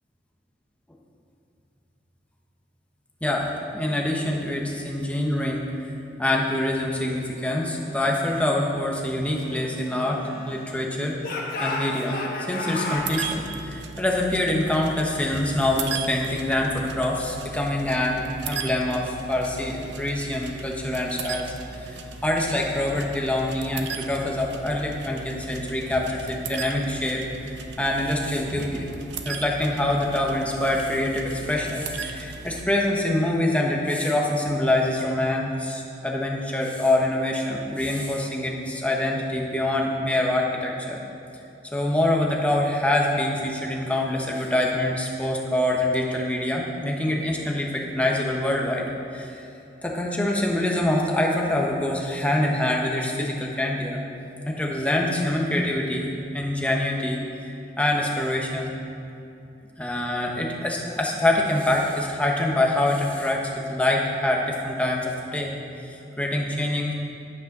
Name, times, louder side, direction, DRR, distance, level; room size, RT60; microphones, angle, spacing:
voice 1, 3.2-5.9 6.2-11.2 11.6-12.2 12.5-27.2 27.8-28.9 29.2-41.0 41.7-48.9 49.1-49.5 49.8-54.1 54.5-56.1 56.3-58.7 59.8-65.5 65.9-66.9, left 1 dB, 10° left, -2 dB, 1.1 m, -25 dB
Speech / Shout, 9.2-10.8 11.2-13.1, left 2 dB, 55° left, 1.4 m, -32 dB
sound 1, 12.9-32.6, right 5 dB, 70° right, 0.7 m, -37 dB
9.7 x 7.7 x 6.1 m, 2.7 s
head